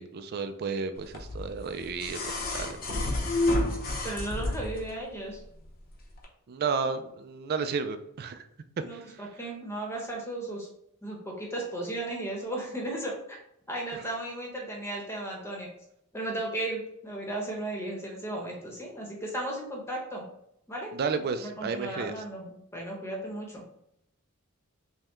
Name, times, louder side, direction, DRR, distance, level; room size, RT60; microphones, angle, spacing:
voice 1, 0.0-2.7 3.0-3.2 6.5-8.4 8.9-9.0 20.9-22.1, right 5 dB, 45° right, 9 dB, 0.3 m, -32 dB
sound 1, 1.1-4.9 6.2-6.3, left 2 dB, 45° left, 0.8 m, -30 dB
voice 2, 4.0-5.4 8.8-10.7 11.0-13.4 13.7-15.7 16.1-20.2 20.7-20.9 21.4-23.6, right 1 dB, 10° left, -1 dB, 1.0 m, -35 dB
5.4 x 2.2 x 3.1 m, 0.78 s
head